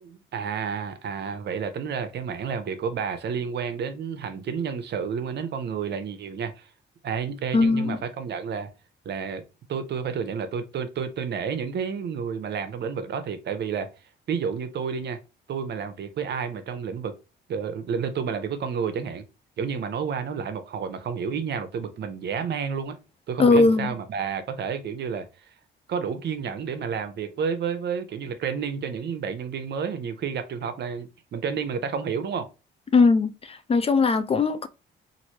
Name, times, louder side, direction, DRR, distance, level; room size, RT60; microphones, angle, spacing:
voice 1, 0.0-6.7 7.0-8.7 9.0-9.4 9.7-13.9 14.3-15.2 15.5-17.1 17.5-19.2 19.6-22.9 23.3-25.3 25.9-32.5, right 6 dB, 60° right, 0.7 m, -30 dB
voice 2, 7.5-8.0 23.4-23.9 32.9-34.7, left 3 dB, 30° left, 0.4 m, -20 dB
3.0 x 2.6 x 2.8 m
cardioid pair, 90°, 20 cm